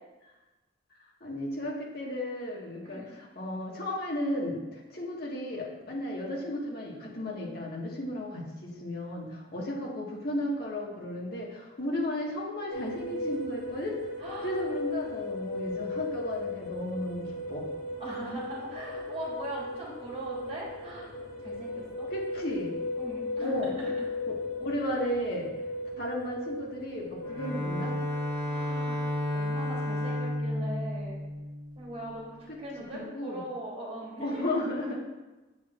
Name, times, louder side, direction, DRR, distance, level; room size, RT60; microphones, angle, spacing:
voice 1, 1.2-14.0 14.4-17.7 22.1-22.7 23.4-23.7 24.3-24.4 24.6-25.5 26.0-27.9 33.0-33.4 34.2-35.0, left 1 dB, 55° left, -3 dB, 1.6 m, -34 dB
sound 1, 12.7-29.9, left 2 dB, 75° left, 2.3 m, -37 dB
voice 2, 14.2-14.7 18.0-21.1 21.4-22.1 23.0-24.1 28.4-29.1 29.3-31.2 31.7-34.5, right 1 dB, 35° right, -4 dB, 2.4 m, -40 dB
Bowed string instrument, 27.3-32.2, left 1 dB, 10° left, 2.4 m, -32 dB
8.0 x 7.2 x 2.5 m, 1.1 s
head